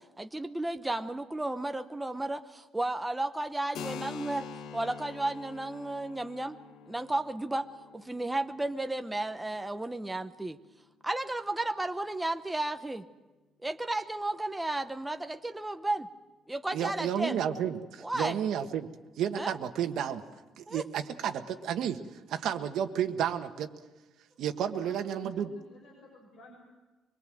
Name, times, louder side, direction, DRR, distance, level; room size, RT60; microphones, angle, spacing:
voice 1, 0.2-4.5 4.7-6.6 6.9-7.7 7.9-10.6 11.0-13.0 13.6-16.1 16.5-17.4 18.0-18.4 19.4-19.5 20.7-20.8, right 2 dB, 10° right, 8 dB, 0.8 m, -33 dB
Keyboard (musical), 3.7-11.1, left 7 dB, 90° left, 1.3 m, -46 dB
voice 2, 16.7-18.9 19.2-20.2 20.6-22.0 22.3-23.7 24.4-25.5, right 9 dB, 70° right, 7 dB, 1.5 m, -31 dB
voice 3, 24.7-26.6, left 2 dB, 55° left, -2 dB, 6.5 m, -54 dB
24.0 x 22.0 x 7.8 m, 1.2 s
cardioid pair, 165°, 0 cm